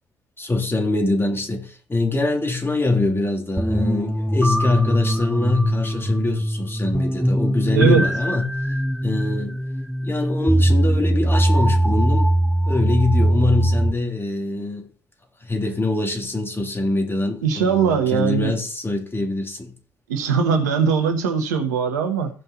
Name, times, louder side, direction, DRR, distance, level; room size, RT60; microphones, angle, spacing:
voice 1, 0.4-8.5 9.0-9.6 10.0-12.3 12.7-14.9 15.4-19.7, left 2 dB, 25° left, 3.2 m, -24 dB
sound 1, 3.6-13.9, right 1 dB, 5° right, 0.7 m, -21 dB
voice 2, 7.7-8.1 17.4-18.5 20.1-22.3, right 6 dB, 85° right, 1.2 m, -20 dB
15.5 x 5.5 x 4.1 m
hypercardioid pair, 40°, 9 cm